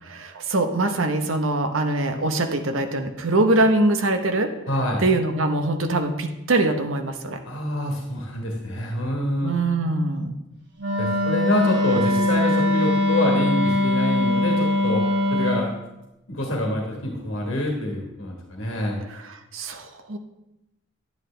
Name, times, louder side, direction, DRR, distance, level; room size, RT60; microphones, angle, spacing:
voice 1, 0.0-4.6 5.0-7.4 9.4-10.4 19.1-20.2, right 2 dB, 90° right, 6 dB, 0.9 m, -23 dB
voice 2, 4.7-5.0 7.4-9.6 11.0-15.0 15.3-15.7 16.3-19.0, left 1 dB, 80° left, 0 dB, 1.6 m, -26 dB
Wind instrument woodwind instrument, 10.8-15.7, left 1 dB, 65° right, 2.9 m, -21 dB
10.5 x 9.5 x 3.3 m, 0.94 s
head